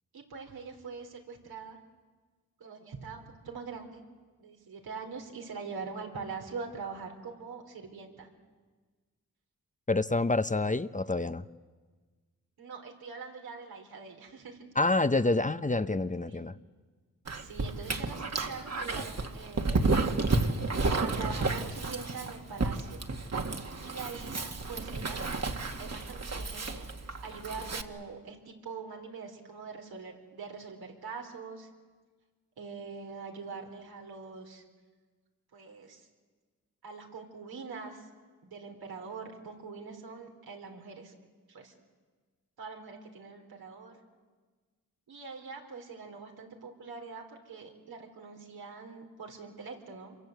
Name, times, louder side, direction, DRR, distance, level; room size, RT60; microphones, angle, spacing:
voice 1, 0.1-1.8 2.6-4.0 4.4-8.3 12.6-14.7 16.3-16.4 17.4-20.0 21.0-23.1 23.9-25.3 25.8-26.9 27.2-31.7 32.6-34.6 35.5-36.1 36.8-38.0 38.4-41.1 41.5-41.7 42.6-44.0 45.1-50.2, right 5 dB, 80° right, 4.3 m, -43 dB
voice 2, 9.9-11.4 14.8-16.5, left 2 dB, 20° left, 1.0 m, -27 dB
Dog, 17.3-27.8, right 3 dB, 45° right, 2.2 m, -32 dB
27.0 x 23.0 x 8.2 m
supercardioid pair, 40°, 37 cm